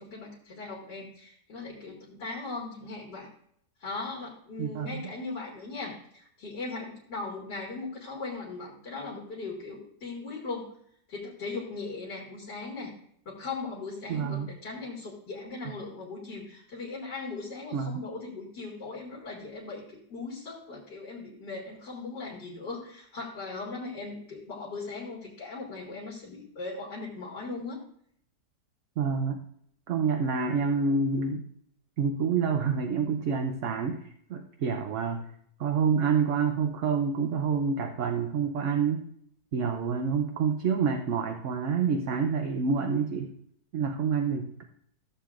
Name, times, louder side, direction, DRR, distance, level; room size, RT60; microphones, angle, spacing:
voice 1, 0.0-3.3 3.8-10.8 11.1-12.9 13.3-27.8, left 3 dB, 90° left, -5 dB, 2.7 m, -39 dB
voice 2, 4.6-5.0 14.1-14.5 17.7-18.0 29.0-29.4 29.9-31.4 32.0-34.0 34.3-35.2 35.6-39.1 39.5-43.3 43.7-44.6, right 5 dB, 60° right, 4 dB, 0.9 m, -27 dB
14.5 x 7.4 x 2.5 m, 0.67 s
omnidirectional pair, 1.8 m